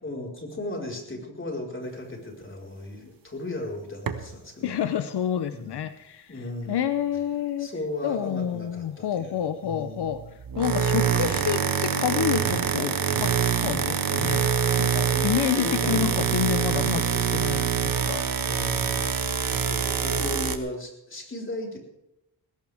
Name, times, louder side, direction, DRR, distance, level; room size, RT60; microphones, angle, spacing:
voice 1, 0.0-4.8 5.5-5.8 6.3-6.9 7.6-10.3 15.0-16.2 16.7-17.4 18.4-19.1 19.4-21.8, left 1 dB, 30° left, 0 dB, 4.9 m, -36 dB
sound 1, 4.1-4.3 10.4-20.6, right 7 dB, 55° right, 1.5 m, -25 dB
voice 2, 4.6-7.7 8.0-10.2 10.6-13.3 13.6-14.5 14.8-18.3, left 9 dB, 75° left, 11 dB, 0.8 m, -29 dB
19.5 x 17.0 x 3.6 m, 0.87 s
cardioid pair, 95°, 40 cm